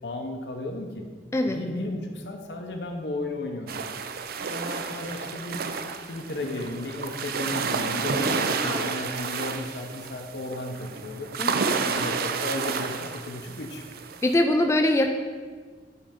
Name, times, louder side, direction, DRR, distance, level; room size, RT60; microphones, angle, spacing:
voice 1, 0.0-1.0 1.5-3.8 4.5-11.3 11.8-13.8, left 2 dB, 70° left, 3 dB, 0.8 m, -34 dB
sound 1, 3.7-14.3, right 5 dB, 60° right, 0.4 m, -30 dB
voice 2, 11.4-12.0 14.2-15.1, left 1 dB, 15° left, 4 dB, 0.3 m, -23 dB
8.5 x 3.3 x 5.1 m, 1.5 s
head